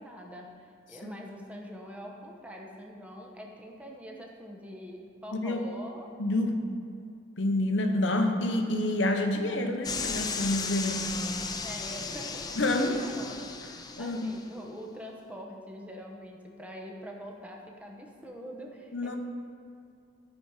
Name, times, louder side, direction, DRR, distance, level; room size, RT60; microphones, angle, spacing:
voice 1, 0.0-6.1 11.6-13.4 13.7-19.2, equal, 5° right, 0 dB, 1.0 m, -44 dB
voice 2, 6.2-6.6 7.4-11.2 12.6-13.0 14.0-14.3 18.9-19.2, left 1 dB, 65° left, 5 dB, 0.9 m, -28 dB
sound 1, 9.8-14.4, left 5 dB, 20° left, 0.5 m, -35 dB
13.0 x 5.1 x 5.6 m, 2.3 s
head